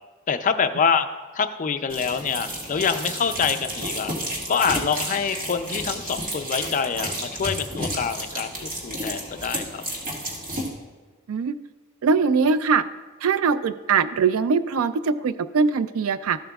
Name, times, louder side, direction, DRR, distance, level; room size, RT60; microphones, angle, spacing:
voice 1, 0.3-1.1 1.3-4.1 4.5-9.8, left 6 dB, 40° left, 9 dB, 0.4 m, -25 dB
sound 1, 1.9-10.7, equal, 45° right, 1.8 m, -32 dB
voice 2, 12.0-12.8 13.2-16.4, right 5 dB, 80° right, 14 dB, 0.4 m, -21 dB
13.5 x 7.4 x 2.3 m, 1.3 s
head